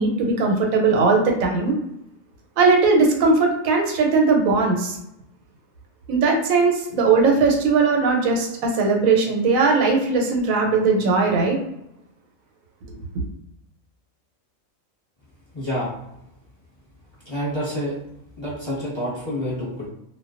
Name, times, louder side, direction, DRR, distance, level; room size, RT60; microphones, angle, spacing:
voice 1, 0.0-1.8 2.6-5.0 6.1-11.6, right 4 dB, 90° right, 1 dB, 1.0 m, -19 dB
voice 2, 15.5-15.9 17.3-17.9 18.4-19.9, equal, 25° left, -9 dB, 0.8 m, -28 dB
2.3 x 2.2 x 2.4 m, 0.82 s
omnidirectional pair, 1.4 m